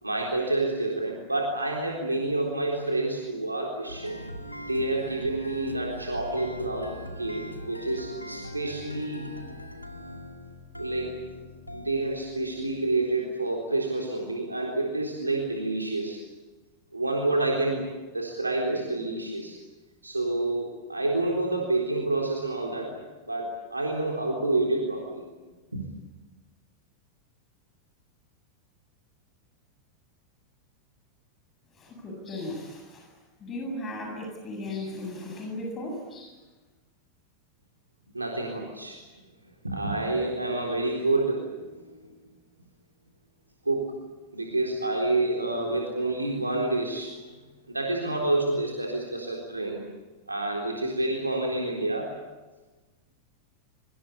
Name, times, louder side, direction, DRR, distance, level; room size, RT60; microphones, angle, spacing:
voice 1, 0.0-4.2 4.6-9.3 10.8-11.2 11.7-16.2 16.9-17.9 18.1-19.6 20.0-23.0 23.2-25.2 25.7-25.9 38.1-39.0 39.6-42.1 43.7-43.9 44.3-47.3 47.7-49.8 50.3-52.1, right 2 dB, 80° right, 0 dB, 3.9 m, -28 dB
sound 1, 3.9-13.0, equal, 85° left, 2.2 m, -41 dB
voice 2, 31.8-33.1 33.4-36.4, left 1 dB, 25° left, 2 dB, 7.8 m, -36 dB
24.5 x 24.5 x 8.5 m, 1.2 s
figure-of-eight pair, 90°, 0 cm